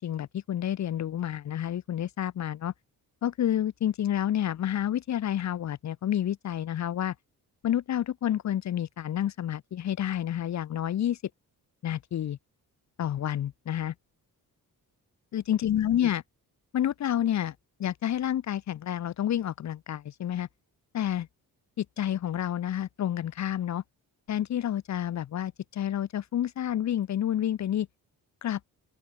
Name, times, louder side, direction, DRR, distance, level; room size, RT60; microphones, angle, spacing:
voice 1, 0.0-2.7 3.2-7.1 7.6-11.2 11.8-12.4 13.0-13.9 15.3-16.2 16.7-17.5 17.8-20.5 20.9-21.3 21.8-23.8 24.3-27.9 28.4-28.6, left 11 dB, 50° left, 0.6 m, -29 dB
open air
wide cardioid pair, 160°, 37 cm